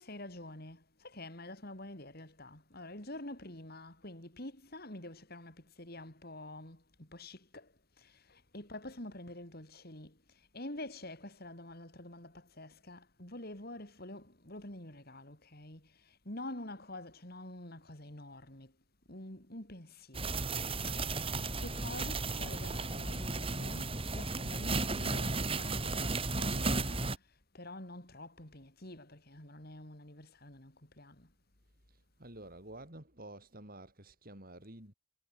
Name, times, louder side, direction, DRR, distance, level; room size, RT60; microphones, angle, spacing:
voice 1, 0.0-18.7 19.1-20.9 21.6-27.2 27.5-31.3, left 1 dB, 45° left, 4.0 m, -47 dB
sound 1, 20.1-27.2, right 3 dB, 25° right, 2.7 m, -34 dB
voice 2, 31.9-34.9, right 1 dB, 40° right, 4.1 m, -50 dB
head